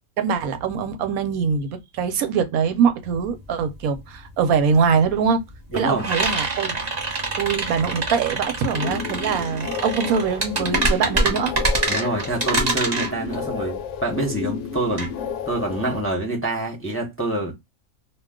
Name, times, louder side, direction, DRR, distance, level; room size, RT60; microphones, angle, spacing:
voice 1, 0.2-5.4 5.8-6.8 7.4-11.5, right 6 dB, 80° right, 1.1 m, -23 dB
sound 1, 3.0-3.2 3.4-16.1, right 2 dB, 30° right, 1.0 m, -26 dB
voice 2, 5.7-6.1 11.9-15.1 15.5-17.6, right 2 dB, 15° left, 0.6 m, -26 dB
sound 2, 8.6-16.0, left 7 dB, 70° left, 0.8 m, -32 dB
2.4 x 2.3 x 3.5 m
omnidirectional pair, 1.5 m